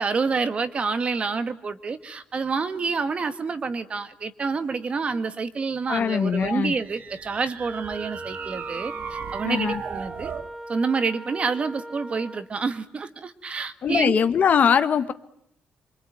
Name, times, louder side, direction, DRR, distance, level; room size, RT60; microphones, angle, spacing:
voice 1, 0.0-10.3 10.7-14.2, right 4 dB, 30° right, 11 dB, 1.6 m, -28 dB
voice 2, 5.9-6.7 9.4-9.8 13.8-15.1, left 7 dB, 45° left, 12 dB, 1.3 m, -21 dB
sound 1, 6.1-10.5, right 7 dB, 50° right, 1.5 m, -37 dB
Wind instrument woodwind instrument, 7.6-12.5, right 1 dB, 10° right, 1.7 m, -39 dB
26.0 x 24.5 x 9.3 m, 0.70 s
cardioid pair, 140°, 4 cm